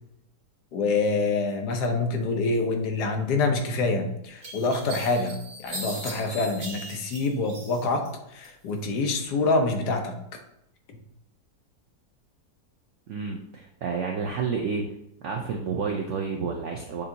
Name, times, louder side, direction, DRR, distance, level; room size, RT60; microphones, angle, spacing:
voice 1, 0.7-10.2, left 3 dB, 75° left, 4 dB, 1.2 m, -26 dB
sound 1, 3.7-3.8 4.4-8.1 8.4-9.2, right 1 dB, 40° right, 0.9 m, -39 dB
voice 2, 13.1-14.9 15.2-17.0, right 5 dB, 85° right, 1 dB, 0.6 m, -30 dB
6.7 x 2.8 x 2.6 m, 0.81 s
omnidirectional pair, 1.8 m